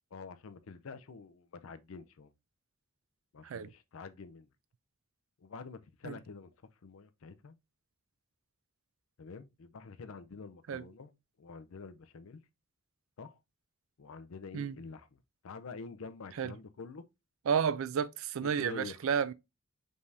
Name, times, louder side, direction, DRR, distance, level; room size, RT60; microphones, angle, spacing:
voice 1, 0.1-2.3 3.3-4.5 5.4-6.5 6.8-7.6 9.2-11.1 11.4-12.4 13.2-13.4 14.0-15.2 15.4-17.0 18.6-19.0, left 4 dB, 70° left, 0.5 m, -47 dB
voice 2, 17.5-19.3, right 7 dB, 70° right, 0.4 m, -31 dB
5.2 x 3.4 x 2.6 m
head